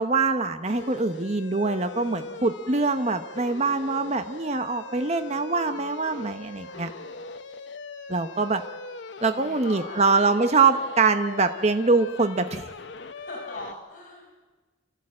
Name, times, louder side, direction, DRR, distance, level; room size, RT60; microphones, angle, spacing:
voice 1, 0.0-6.9 8.1-8.6 9.2-12.7, right 4 dB, 35° right, 8 dB, 0.8 m, -24 dB
sound 1, 0.6-13.7, left 3 dB, 75° left, 0.9 m, -41 dB
voice 2, 2.0-2.5 6.5-6.9 9.2-10.0 10.6-10.8 13.1-14.4, left 1 dB, 45° left, -1 dB, 5.2 m, -42 dB
28.0 x 14.5 x 8.7 m, 1.3 s
head